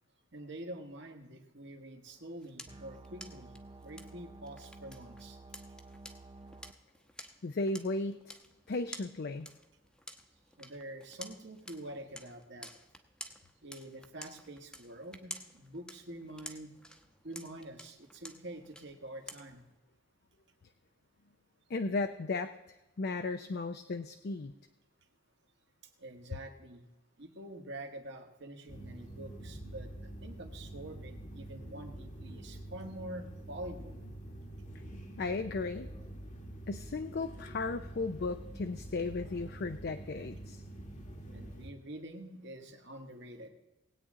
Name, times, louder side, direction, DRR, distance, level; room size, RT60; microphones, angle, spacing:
voice 1, 0.3-3.5 3.8-5.4 10.6-12.7 13.6-16.7 17.2-19.7 26.0-26.9 27.2-34.0 41.3-43.5, right 1 dB, 65° right, 4 dB, 1.6 m, -46 dB
sound 1, 2.0-19.8, left 1 dB, 5° left, 0.9 m, -52 dB
sound 2, 2.7-6.7, right 2 dB, 25° right, 0.4 m, -52 dB
voice 2, 7.4-8.3 8.7-9.5 21.7-24.5 35.2-35.9 36.7-40.6, left 3 dB, 55° left, 8 dB, 0.5 m, -35 dB
sound 3, 28.7-41.7, right 1 dB, 40° left, 1.2 m, -46 dB
19.5 x 8.7 x 3.7 m, 1.0 s
head